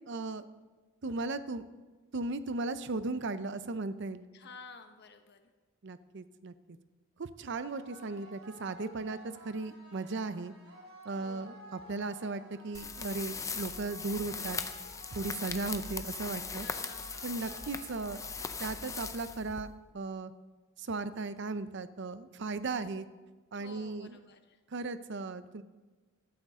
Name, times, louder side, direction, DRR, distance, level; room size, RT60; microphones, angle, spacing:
voice 1, 0.1-0.4 1.0-1.6 2.1-4.2 5.8-6.8 7.2-9.2 9.4-10.5 11.0-14.6 15.1-16.7 17.2-18.2 18.6-19.7 19.9-20.3 20.8-23.1 23.5-24.1 24.7-25.6, right 3 dB, 55° right, 13 dB, 0.6 m, -36 dB
voice 2, 4.3-5.5 11.1-11.6 16.5-17.4 23.5-24.6, left 4 dB, 55° left, 6 dB, 1.2 m, -52 dB
sound 1, 7.5-19.5, right 1 dB, 80° right, 3.2 m, -54 dB
sound 2, 12.7-19.9, left 5 dB, 15° left, 0.5 m, -40 dB
15.0 x 13.0 x 3.7 m, 1.3 s
head